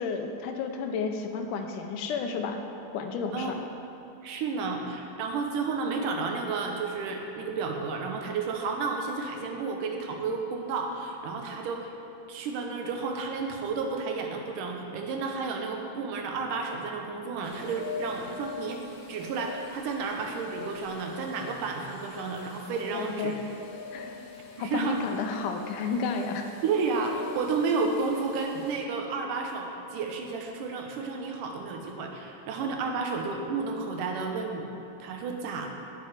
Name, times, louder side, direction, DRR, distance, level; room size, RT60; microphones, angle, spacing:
voice 1, 0.0-2.6 2.9-3.6 22.9-23.3 23.9-24.2 24.6-26.5, left 5 dB, 85° left, 5 dB, 2.2 m, -32 dB
voice 2, 4.2-11.9 12.3-18.8 19.1-23.3 24.6-25.0 26.6-34.7 35.0-35.7, right 4 dB, 90° right, 2 dB, 2.6 m, -31 dB
sound 1, 17.4-28.7, left 4 dB, 70° left, 1.9 m, -44 dB
9.6 x 9.1 x 5.0 m, 2.9 s
omnidirectional pair, 3.6 m